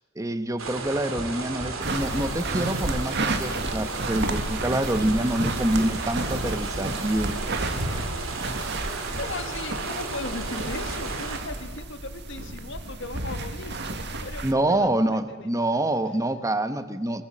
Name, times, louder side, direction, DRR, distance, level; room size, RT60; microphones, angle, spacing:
voice 1, 0.2-7.3 14.4-17.2, right 1 dB, 15° right, 10 dB, 1.1 m, -26 dB
sound 1, 0.6-11.4, right 3 dB, 80° right, 3.1 m, -34 dB
sound 2, 1.2-1.3 1.6-1.7 2.0-2.2 2.4-2.6 2.9-3.0 3.3-3.4 3.7-3.9 4.2-4.7 5.0-5.1 5.4-5.6 5.9-6.0 6.3-6.4 6.7-6.9 7.2-7.3 7.6-7.8, equal, 30° left, 1.8 m, -36 dB
sound 3, 1.8-14.5, right 2 dB, 55° right, 1.9 m, -32 dB
voice 2, 9.2-15.5, left 2 dB, 60° left, 8 dB, 2.0 m, -37 dB
27.5 x 19.5 x 7.4 m, 1.3 s
head